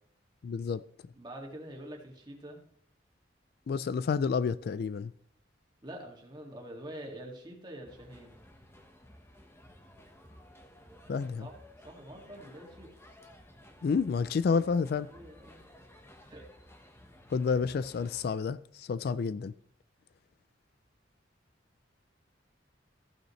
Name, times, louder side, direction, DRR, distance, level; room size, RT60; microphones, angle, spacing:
voice 1, 0.4-0.8 3.7-5.1 11.1-11.5 13.8-15.1 17.3-19.5, left 5 dB, 55° left, 0.3 m, -29 dB
voice 2, 1.1-2.6 5.8-8.4 11.4-11.5 11.8-12.9 15.1-15.6 16.2-16.5, right 1 dB, 25° right, 2.2 m, -45 dB
sound 1, 7.9-18.3, left 1 dB, 15° left, 1.2 m, -55 dB
14.5 x 9.0 x 3.2 m
head